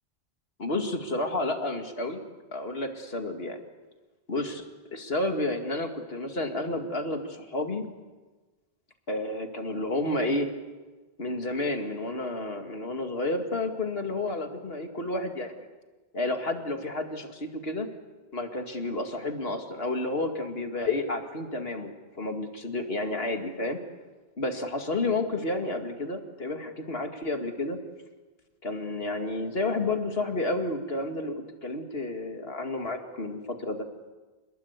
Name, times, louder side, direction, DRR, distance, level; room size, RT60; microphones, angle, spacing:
voice 1, 0.6-2.2 2.5-3.6 4.3-4.6 4.9-7.8 9.1-10.5 11.2-15.6 16.1-17.9 18.3-21.9 22.2-23.8 24.4-27.8 28.6-31.3 31.6-33.9, left 2 dB, 65° left, 5 dB, 2.5 m, -30 dB
28.0 x 21.0 x 8.2 m, 1.3 s
omnidirectional pair, 1.1 m